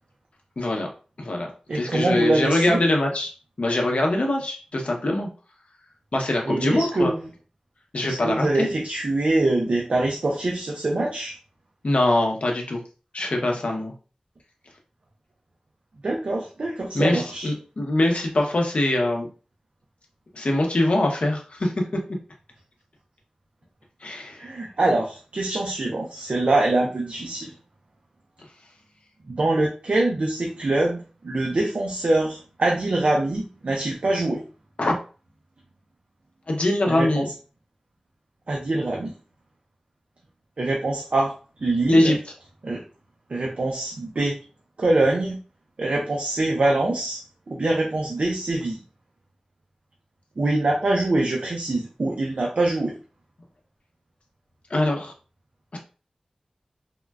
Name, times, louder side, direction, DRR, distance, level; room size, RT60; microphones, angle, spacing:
voice 1, 0.6-0.9 1.2-1.5 1.7-3.3 3.6-5.3 6.1-7.1 7.9-8.7 11.8-12.8 13.1-13.9 16.9-19.3 20.3-21.7 24.0-24.5 34.8-35.0 36.5-37.3 41.9-42.2 54.7-55.1 55.7-55.8, left 1 dB, 70° left, 1 dB, 0.7 m, -23 dB
voice 2, 1.7-2.8 6.5-7.3 8.0-11.4 16.0-17.5 24.4-27.5 29.3-34.4 36.9-37.3 38.5-39.1 40.6-41.3 41.6-42.2 42.6-42.8 43.3-44.4 44.8-45.4 45.8-47.2 47.5-48.8 50.4-52.9, right 2 dB, 70° right, -1 dB, 0.5 m, -24 dB
3.6 x 2.1 x 2.3 m, 0.36 s
wide cardioid pair, 65°, 2 cm